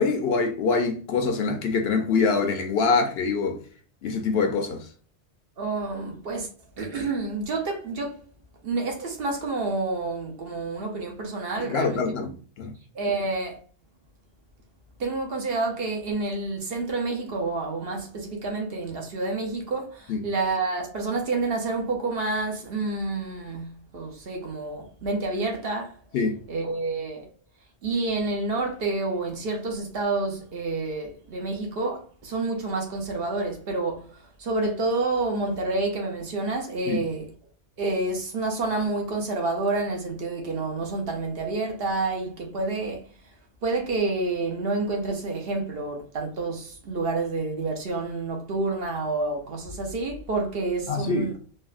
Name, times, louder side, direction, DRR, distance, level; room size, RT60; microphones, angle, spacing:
voice 1, 0.0-3.6 4.0-4.9 11.6-12.7 20.1-20.2 26.1-26.4 36.9-37.0 50.9-51.3, left 4 dB, 65° left, 0.8 m, -24 dB
voice 2, 5.6-6.5 6.8-8.3 8.6-12.0 12.9-13.6 15.0-26.0 26.5-27.3 27.8-34.1 34.4-37.3 37.8-43.0 43.6-51.4, right 3 dB, 60° right, 0.9 m, -28 dB
3.3 x 2.1 x 2.3 m
omnidirectional pair, 1.1 m